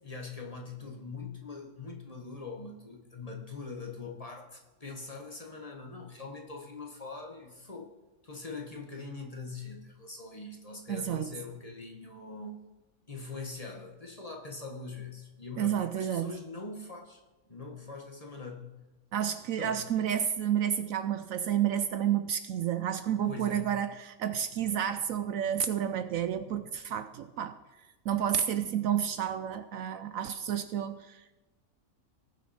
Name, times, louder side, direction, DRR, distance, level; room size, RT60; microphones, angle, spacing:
voice 1, 0.0-7.9 8.2-12.6 13.1-18.7 19.6-19.8 23.1-23.7, left 3 dB, 25° left, 1 dB, 1.5 m, -42 dB
voice 2, 10.9-11.3 15.6-16.4 19.1-27.6 28.0-31.4, right 9 dB, 70° right, 11 dB, 0.9 m, -30 dB
19.0 x 6.4 x 4.3 m, 1.1 s
omnidirectional pair, 1.6 m